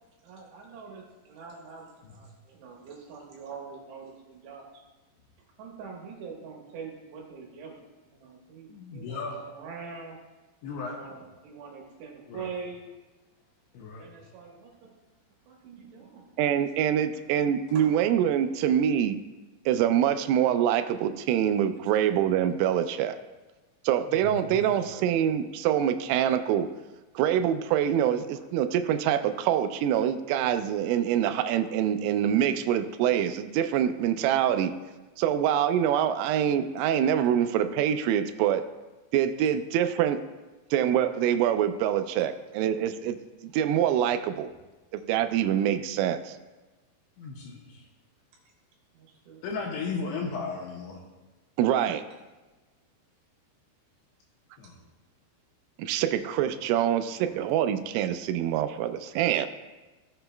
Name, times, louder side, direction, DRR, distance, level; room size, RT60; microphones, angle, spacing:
voice 1, 0.2-4.8 5.6-10.2 10.8-12.8 13.9-14.9 15.5-16.6 17.7-18.0 24.7-25.1 48.9-49.4 54.6-54.7, right 5 dB, 70° right, -1 dB, 3.1 m, -44 dB
voice 2, 8.7-9.4 10.6-11.0 12.3-12.5 13.7-14.1 24.1-24.9 47.2-47.9 49.4-51.0 54.6-54.8, left 4 dB, 80° left, -1 dB, 2.8 m, -36 dB
voice 3, 16.4-19.2 19.7-23.2 23.8-26.7 27.2-34.7 35.2-38.6 39.1-40.2 40.7-43.2 43.4-44.5 44.9-46.4 51.6-52.0 55.8-59.5, right 10 dB, 90° right, 9 dB, 3.2 m, -25 dB
16.5 x 6.8 x 2.2 m, 1.2 s
omnidirectional pair, 5.7 m